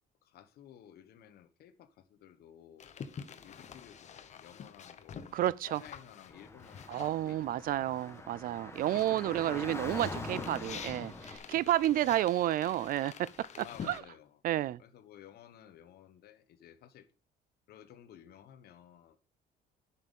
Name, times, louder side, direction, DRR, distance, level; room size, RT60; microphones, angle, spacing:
voice 1, 0.2-5.3 5.8-8.0 8.9-9.9 10.1-11.1 13.6-14.4 14.8-17.1 17.7-19.2, left 10 dB, 70° left, 1.2 m, -55 dB
sound 1, 2.8-8.2 8.5-14.0, left 7 dB, 45° left, 1.0 m, -48 dB
voice 2, 5.3-5.8 6.9-11.1 11.5-13.3 13.9-14.0 14.4-14.8, right 13 dB, 60° right, 0.4 m, -30 dB
Car / Traffic noise roadway noise, 6.3-11.4, left 2 dB, 15° left, 1.4 m, -44 dB
10.5 x 5.8 x 5.3 m
cardioid pair, 110°, 17 cm